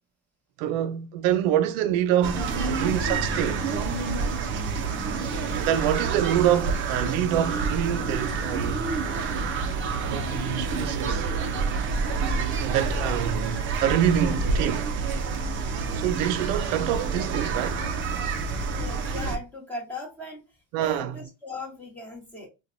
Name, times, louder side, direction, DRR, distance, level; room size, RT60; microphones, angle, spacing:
voice 1, 0.6-3.8 5.5-8.8 10.1-11.3 12.6-15.0 15.9-17.9 20.7-21.2, right 10 dB, 80° right, 0.6 m, -26 dB
sound 1, 2.2-19.4, right 4 dB, 30° right, 0.5 m, -28 dB
voice 2, 18.7-20.4 20.8-22.5, left 2 dB, 5° left, 1.2 m, -38 dB
4.3 x 2.3 x 2.6 m
cardioid pair, 160°, 39 cm